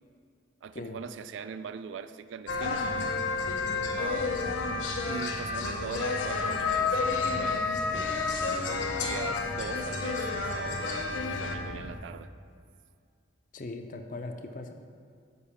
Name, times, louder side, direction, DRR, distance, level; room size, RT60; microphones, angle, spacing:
voice 1, 0.6-2.9 4.0-4.6 5.0-7.7 8.4-12.3, right 6 dB, 75° right, 12 dB, 0.3 m, -41 dB
sound 1, 2.5-11.6, left 4 dB, 90° left, 0.7 m, -31 dB
sound 2, 2.5-12.0, left 2 dB, 65° left, 1.1 m, -39 dB
voice 2, 13.5-14.7, left 2 dB, 40° left, 6 dB, 0.5 m, -39 dB
6.8 x 5.2 x 5.6 m, 2.3 s
head